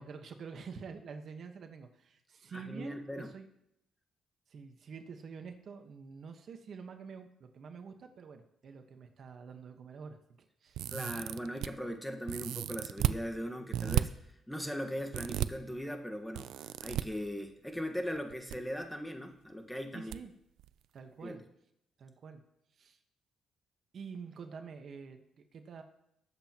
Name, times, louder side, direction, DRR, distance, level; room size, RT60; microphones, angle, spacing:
voice 1, 0.0-3.5 4.5-10.8 19.9-20.3 20.9-21.4 22.0-22.4 22.7-23.0 23.9-25.8, right 5 dB, 55° right, 6 dB, 1.2 m, -47 dB
voice 2, 2.5-3.3 10.9-14.1 14.5-20.1 21.2-21.4, equal, 5° left, 4 dB, 1.4 m, -39 dB
sound 1, 10.7-11.7 12.3-13.2 13.7-14.0 15.1-15.5 16.3-17.0 18.2-18.6 18.8-18.9 20.1-20.2 20.6-20.7, right 12 dB, 85° right, 0.4 m, -33 dB
20.5 x 8.0 x 3.0 m, 0.80 s
cardioid pair, 90°, 0 cm